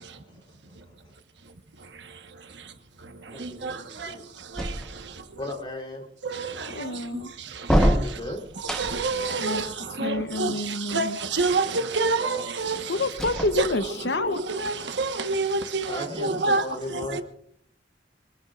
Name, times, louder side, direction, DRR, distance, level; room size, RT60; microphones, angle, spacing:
voice 1, 0.1-0.8 3.3-4.2 5.4-6.0 8.0-8.4 12.2-12.5 15.9-17.2, left 1 dB, 25° left, 3.7 m, -37 dB
voice 2, 3.4-4.1 4.6-4.7 6.2-6.9 7.7-7.9 8.6-12.9 13.5-16.7 16.9-17.2, right 3 dB, 75° right, 1.3 m, -28 dB
sound 1, 4.6-5.3 7.6-9.2 13.1-14.1, equal, 5° left, 1.1 m, -25 dB
voice 3, 6.7-7.3 9.4-9.6 10.0-11.2 12.9-14.4, left 2 dB, 70° left, 0.9 m, -28 dB
24.5 x 21.0 x 2.5 m
head